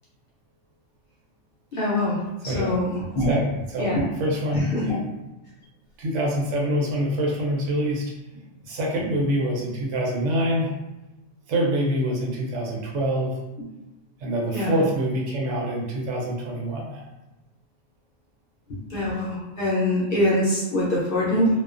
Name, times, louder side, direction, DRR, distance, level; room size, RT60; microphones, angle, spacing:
voice 1, 1.7-2.2 2.4-3.4 3.8-4.0 4.7-5.0 14.5-14.7 18.9-21.5, left 1 dB, 55° left, -6 dB, 0.7 m, -23 dB
voice 2, 3.7-5.0 6.0-8.1 8.6-10.7 11.5-13.3 14.2-17.0, equal, 75° right, -2 dB, 0.9 m, -25 dB
2.3 x 2.2 x 2.4 m, 1.0 s
omnidirectional pair, 1.3 m